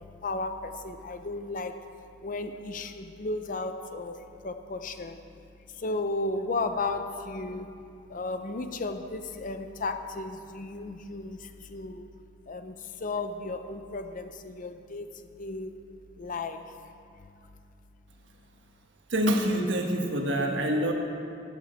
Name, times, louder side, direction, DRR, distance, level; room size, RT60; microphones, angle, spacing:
voice 1, 0.0-1.7 2.2-4.1 4.4-5.2 5.8-7.7 8.1-12.1 12.5-15.1 15.4-15.7 16.2-16.6, left 3 dB, 45° left, 8 dB, 0.6 m, -34 dB
voice 2, 19.1-20.9, equal, 80° right, 2 dB, 1.3 m, -26 dB
15.0 x 8.7 x 4.4 m, 2.5 s
head